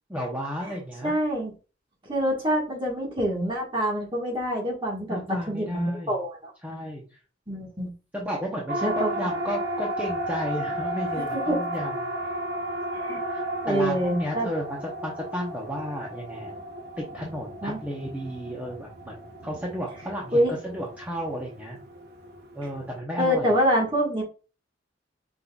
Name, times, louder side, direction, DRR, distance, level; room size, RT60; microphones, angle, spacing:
voice 1, 0.1-1.1 5.1-6.1 6.6-7.0 8.1-11.9 13.3-16.6 17.0-21.8 22.5-23.5, equal, 10° right, -3 dB, 0.8 m, -33 dB
voice 2, 1.0-1.5 2.0-6.5 7.5-7.9 8.8-9.3 11.2-11.6 12.9-13.2 13.6-14.5 17.6-17.8 20.3-20.5 23.2-24.2, equal, 25° right, -2 dB, 1.6 m, -26 dB
Siren, 8.7-23.0, right 1 dB, 55° right, 0.8 m, -34 dB
5.4 x 3.7 x 2.3 m, 0.34 s
head